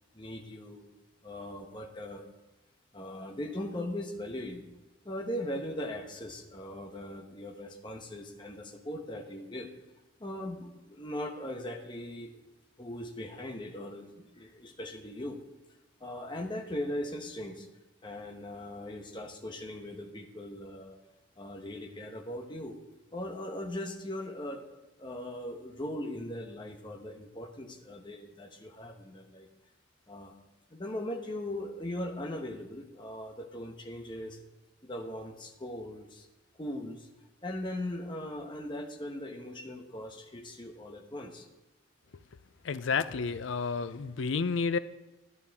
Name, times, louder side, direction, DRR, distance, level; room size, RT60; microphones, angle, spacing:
voice 1, 0.1-0.9 1.2-2.2 2.9-4.6 5.0-9.7 10.2-12.3 12.8-15.4 16.0-17.7 18.0-21.0 21.4-22.8 23.1-24.6 25.0-29.5 30.1-30.3 30.7-34.4 34.8-36.3 36.6-37.1 37.4-41.5, left 1 dB, 25° left, 3 dB, 1.1 m, -39 dB
voice 2, 42.6-44.8, left 5 dB, 80° left, 14 dB, 0.5 m, -30 dB
12.0 x 11.0 x 3.6 m, 1.0 s
head